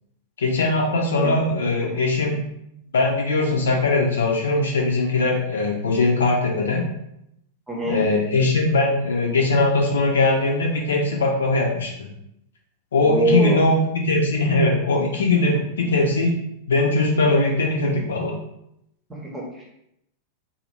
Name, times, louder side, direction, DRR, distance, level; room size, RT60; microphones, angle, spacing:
voice 1, 0.4-2.4 2.9-6.8 7.9-12.1 12.9-16.4 16.7-18.3, left 2 dB, 65° left, 0 dB, 0.6 m, -20 dB
voice 2, 7.7-8.0 13.0-13.7 19.3-19.7, right 1 dB, 10° right, -3 dB, 1.0 m, -23 dB
2.7 x 2.6 x 3.1 m, 0.80 s
figure-of-eight pair, 90°, 0 cm